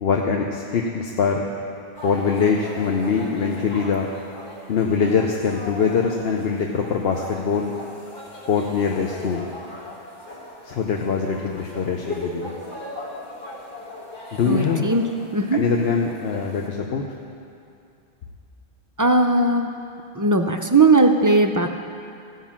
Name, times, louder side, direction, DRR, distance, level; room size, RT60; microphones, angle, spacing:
voice 1, 0.0-1.4 2.0-4.1 4.7-7.7 8.4-9.5 10.6-12.5 14.3-14.9 15.5-17.0, left 5 dB, 70° left, 1 dB, 1.0 m, -23 dB
sound 1, 1.9-16.7, left 1 dB, 55° left, 1.9 m, -38 dB
voice 2, 14.5-15.0 15.3-15.6 19.0-19.7 20.1-21.7, right 2 dB, 35° right, 5 dB, 0.3 m, -18 dB
15.5 x 5.7 x 7.3 m, 2.5 s
omnidirectional pair, 1.1 m